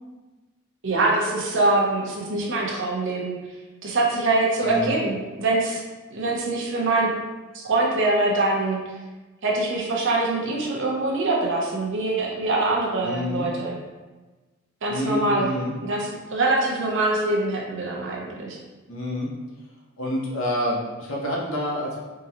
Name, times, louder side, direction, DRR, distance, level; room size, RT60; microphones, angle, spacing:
voice 1, 0.8-3.4 3.8-5.8 6.1-7.1 7.5-8.8 9.4-13.8 14.8-15.5 15.8-18.6, right 2 dB, 60° right, -2 dB, 0.8 m, -24 dB
voice 2, 4.6-5.0 13.0-13.5 14.9-15.7 18.9-19.3 20.0-22.0, left 1 dB, 65° left, -3 dB, 1.0 m, -27 dB
3.8 x 3.7 x 2.9 m, 1.2 s
head